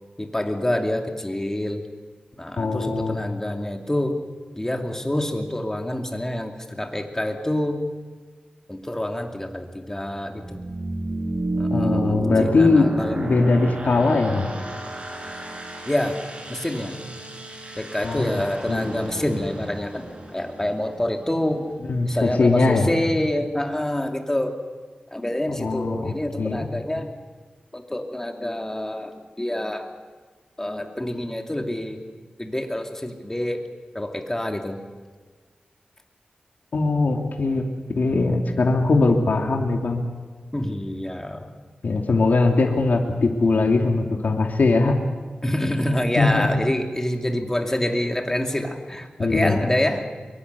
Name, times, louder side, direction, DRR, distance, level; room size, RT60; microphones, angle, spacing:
voice 1, 0.2-1.8 2.4-4.2 4.5-7.9 8.7-10.6 11.6-13.2 15.8-16.2 16.5-17.2 17.8-20.0 20.3-21.7 22.0-24.6 25.1-27.1 27.7-29.1 29.4-29.9 30.6-32.0 32.4-33.7 33.9-34.8 40.5-41.5 45.4-50.1, left 1 dB, 15° left, 4 dB, 2.7 m, -27 dB
voice 2, 2.6-3.2 11.7-14.5 18.0-18.3 18.7-18.9 19.3-19.4 21.9-22.9 25.5-26.7 36.7-37.6 38.0-40.0 41.8-44.9 46.2-46.6 49.2-49.6, left 3 dB, 70° left, 2 dB, 2.7 m, -21 dB
sound 1, 9.3-22.0, right 1 dB, 40° right, 5.9 m, -32 dB
23.0 x 23.0 x 6.9 m, 1.5 s
wide cardioid pair, 90°, 3 cm